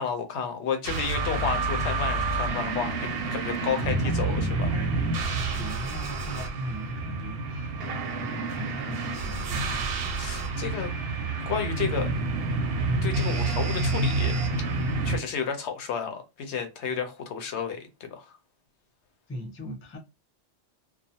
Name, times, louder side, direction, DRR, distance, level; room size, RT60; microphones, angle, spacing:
voice 1, 0.0-4.7 10.2-10.9 11.5-12.1 13.0-14.4 15.0-18.4, left 6 dB, 75° left, 0.9 m, -31 dB
sound 1, 0.8-15.2, right 3 dB, 65° right, 0.7 m, -28 dB
voice 2, 3.6-4.4 4.7-4.9 5.3-10.0 19.3-20.0, equal, 20° left, 0.4 m, -39 dB
2.3 x 2.1 x 2.7 m
omnidirectional pair, 1.2 m